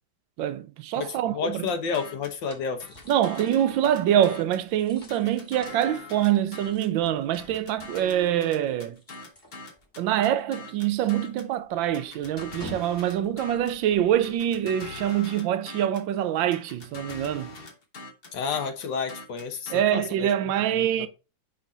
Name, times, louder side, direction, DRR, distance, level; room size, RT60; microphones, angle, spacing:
voice 1, 0.4-1.7 3.1-9.0 10.0-17.5 19.7-21.1, right 11 dB, 85° right, 1.4 m, -25 dB
voice 2, 0.9-2.8 18.3-20.3 20.8-21.1, left 5 dB, 70° left, 1.7 m, -31 dB
sound 1, 1.3-10.1 10.4-10.5 10.9-14.4, equal, 10° left, 1.9 m, -51 dB
sound 2, 1.7-2.4 2.8-4.7 5.1-7.0 7.4-11.5 11.9-13.8 14.2-16.1 16.5-19.8, left 2 dB, 40° left, 1.0 m, -43 dB
5.6 x 5.4 x 3.9 m
omnidirectional pair, 2.1 m